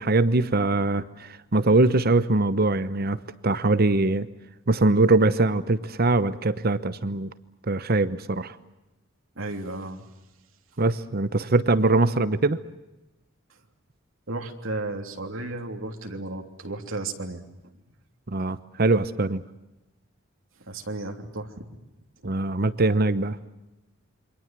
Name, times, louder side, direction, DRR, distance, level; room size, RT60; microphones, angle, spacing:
voice 1, 0.0-4.3 4.7-7.3 7.7-8.5 10.8-12.6 18.3-19.4 22.2-23.4, right 2 dB, 50° right, 14 dB, 1.0 m, -22 dB
voice 2, 9.3-10.0 13.5-13.6 14.3-17.4 20.6-21.6, right 2 dB, 80° right, 4 dB, 3.3 m, -34 dB
28.0 x 24.5 x 7.6 m, 0.97 s
head